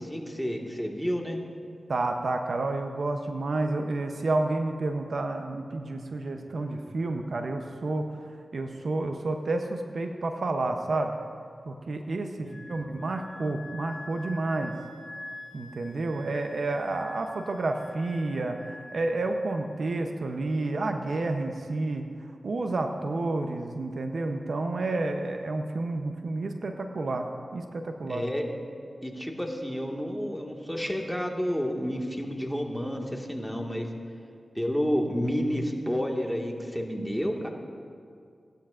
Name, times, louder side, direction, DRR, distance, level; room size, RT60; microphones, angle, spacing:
voice 1, 0.0-1.4 12.4-12.7 28.1-28.4 29.0-33.9 34.5-37.5, equal, 5° left, 0 dB, 1.8 m, -30 dB
voice 2, 1.9-8.1 8.5-11.1 11.7-14.7 15.5-22.1 22.4-27.3 27.5-28.2, right 2 dB, 70° right, 5 dB, 0.7 m, -30 dB
Wind instrument woodwind instrument, 12.5-19.9, left 1 dB, 75° left, 1.4 m, -46 dB
18.0 x 11.5 x 2.5 m, 2.2 s
cardioid pair, 45°, 0 cm